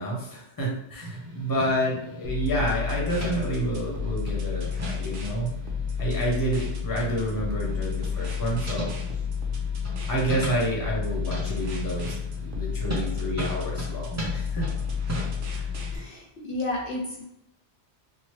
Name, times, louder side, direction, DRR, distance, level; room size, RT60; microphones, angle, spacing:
voice 1, 0.0-5.5 6.0-8.9 10.1-12.0 12.4-14.7 15.5-15.7, right 1 dB, 20° left, -3 dB, 0.7 m, -29 dB
sound 1, 1.0-16.0, equal, 20° right, 0.6 m, -38 dB
sound 2, 2.2-16.0, left 7 dB, 60° right, 0.7 m, -31 dB
voice 2, 15.9-17.2, left 2 dB, 60° left, -2 dB, 0.7 m, -32 dB
2.9 x 2.1 x 3.1 m, 0.80 s
omnidirectional pair, 1.1 m